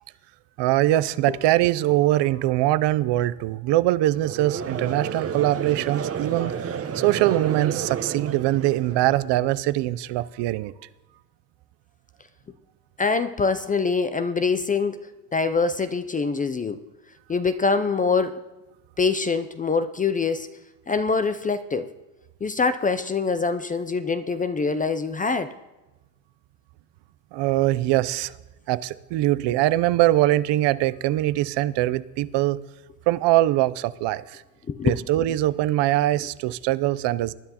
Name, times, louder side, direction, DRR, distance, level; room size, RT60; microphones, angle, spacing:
voice 1, 0.6-10.7 27.3-28.3 28.7-32.6 33.1-34.4 34.8-37.3, right 15 dB, 65° right, 0.6 m, -22 dB
Conversation / Crowd, 4.1-9.4, right 7 dB, 30° right, 0.9 m, -31 dB
voice 2, 13.0-16.8 17.3-18.4 19.0-20.5 20.9-21.9 22.4-25.5 34.7-35.0, left 4 dB, 20° left, 0.3 m, -24 dB
19.5 x 10.0 x 2.9 m
cardioid pair, 100°, 46 cm